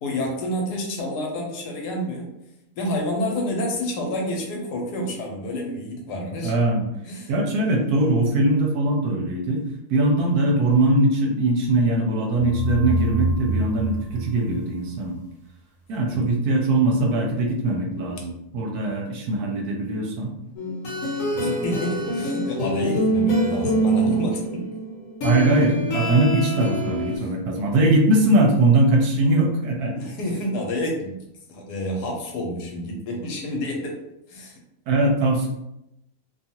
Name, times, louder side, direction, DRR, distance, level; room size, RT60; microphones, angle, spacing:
voice 1, 0.0-2.3 2.7-6.5 7.0-7.3 16.1-16.4 21.3-24.7 27.1-27.3 30.0-31.2 31.5-34.0 34.3-34.6, left 1 dB, 80° left, 0 dB, 1.2 m, -29 dB
voice 2, 6.4-6.8 7.3-9.6 9.9-15.1 15.9-20.3 25.2-29.9 34.9-35.5, right 2 dB, 75° right, 1 dB, 1.0 m, -21 dB
sound 1, 12.4-15.3, right 2 dB, 10° right, 0.4 m, -27 dB
sound 2, 20.6-27.2, right 1 dB, 60° left, 1.1 m, -25 dB
2.7 x 2.3 x 2.8 m, 0.84 s
omnidirectional pair, 1.7 m